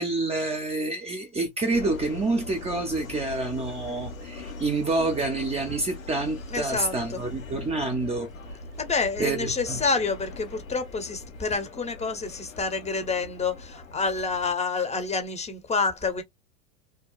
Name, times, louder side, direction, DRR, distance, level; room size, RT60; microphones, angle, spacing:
voice 1, 0.0-8.3 9.2-9.8, right 2 dB, 15° right, 0.7 m, -28 dB
Subway metro underground, 1.7-14.5, left 2 dB, 90° left, 1.3 m, -41 dB
voice 2, 6.5-7.2 8.8-16.2, left 4 dB, 15° left, 0.9 m, -28 dB
2.8 x 2.2 x 2.3 m
hypercardioid pair, 100°, 39 cm